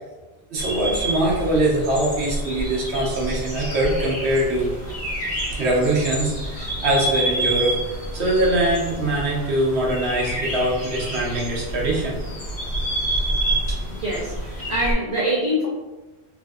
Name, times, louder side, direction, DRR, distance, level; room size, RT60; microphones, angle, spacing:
voice 1, 0.5-4.7 5.6-12.2, right 1 dB, 70° right, -3 dB, 1.0 m, -22 dB
sound 1, 0.6-14.9, right 1 dB, 70° left, 1.4 m, -28 dB
voice 2, 13.7-15.7, equal, 50° right, -6 dB, 0.5 m, -25 dB
3.2 x 2.6 x 2.3 m, 1.1 s
omnidirectional pair, 1.1 m